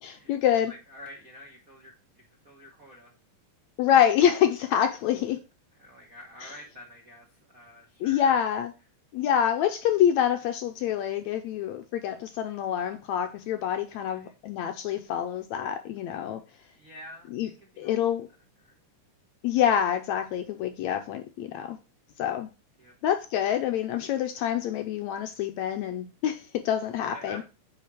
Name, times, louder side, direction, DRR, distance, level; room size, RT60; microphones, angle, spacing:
voice 1, 0.0-0.7 3.8-5.4 6.4-6.5 8.0-8.7 9.1-16.4 17.3-17.5 17.8-18.3 19.4-21.8 22.2-22.5 23.0-27.4, left 9 dB, 75° left, 1.8 m, -26 dB
voice 2, 0.7-3.1 5.8-8.5 14.0-14.3 16.7-17.9 18.6-18.8 22.8-22.9 27.1-27.4, left 1 dB, 50° right, 1.0 m, -48 dB
8.9 x 4.3 x 4.8 m
omnidirectional pair, 3.7 m